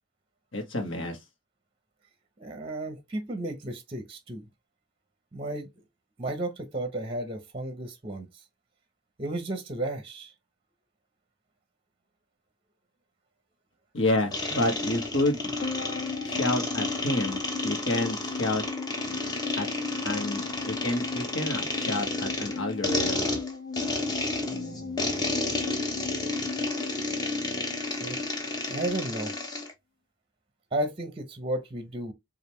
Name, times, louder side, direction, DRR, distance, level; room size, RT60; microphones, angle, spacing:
voice 1, 0.5-1.2 13.9-15.5 16.2-18.6 19.6-19.7 20.0-23.3, left 1 dB, 60° left, 1.3 m, -29 dB
voice 2, 2.4-4.5 5.3-5.7 6.2-8.3 9.2-10.3 24.4-25.2 28.0-28.2 28.7-29.3 30.7-32.1, right 1 dB, 25° right, 0.7 m, -33 dB
sound 1, 14.3-29.7, left 2 dB, 20° left, 0.7 m, -31 dB
sound 2, 15.6-28.1 28.4-28.5, left 5 dB, 40° left, 1.2 m, -38 dB
5.0 x 2.4 x 3.0 m
head